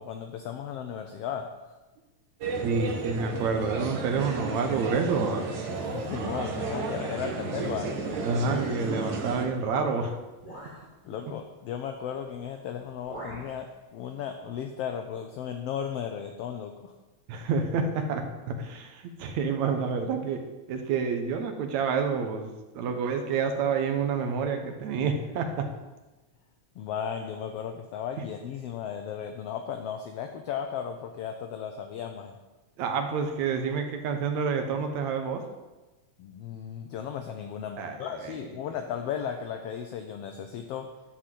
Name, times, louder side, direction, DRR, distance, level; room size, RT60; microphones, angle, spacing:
voice 1, 0.0-1.5 5.7-7.9 10.5-17.0 26.7-32.4 36.2-40.9, left 8 dB, 75° left, 5 dB, 1.4 m, -35 dB
sound 1, 2.4-9.5, right 3 dB, 55° right, 1.4 m, -33 dB
voice 2, 2.6-5.5 7.2-7.4 8.2-10.2 17.3-20.4 20.7-25.7 32.8-35.4 37.8-38.3, right 5 dB, 75° right, 5 dB, 2.3 m, -28 dB
sound 2, 8.1-8.9 9.7-9.9 10.4-10.9 12.3-12.5 12.8-13.6, right 1 dB, 10° right, 2.3 m, -42 dB
11.5 x 4.3 x 7.5 m, 1.1 s
omnidirectional pair, 3.4 m